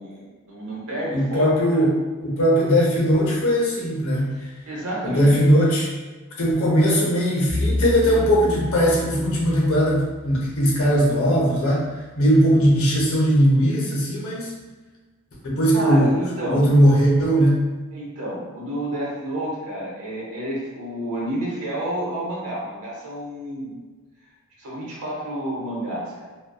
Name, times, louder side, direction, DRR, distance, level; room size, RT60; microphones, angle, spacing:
voice 1, 0.0-1.5 1.7-1.8 4.4-5.3 15.7-16.6 17.9-23.7 24.6-26.3, right 1 dB, 85° right, -5 dB, 0.8 m, -30 dB
voice 2, 1.1-4.3 5.0-5.9 6.4-11.9 12.2-14.6 15.4-17.6, equal, 70° left, -4 dB, 0.7 m, -19 dB
Bowed string instrument, 7.5-11.7, left 2 dB, 10° left, 0.4 m, -31 dB
2.6 x 2.2 x 2.2 m, 1.3 s
head